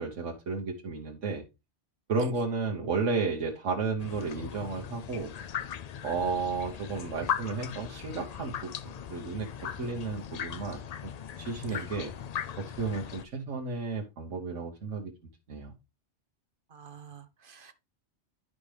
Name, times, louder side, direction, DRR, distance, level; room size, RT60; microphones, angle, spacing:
voice 1, 0.0-1.4 2.1-5.3 6.0-11.1 11.4-12.1 12.6-15.1 15.5-15.7, right 4 dB, 85° right, 1.5 m, -33 dB
sound 1, 4.0-13.2, left 8 dB, 75° left, 0.3 m, -38 dB
voice 2, 16.7-17.7, right 6 dB, 50° right, 1.1 m, -47 dB
11.5 x 5.1 x 3.3 m
omnidirectional pair, 1.2 m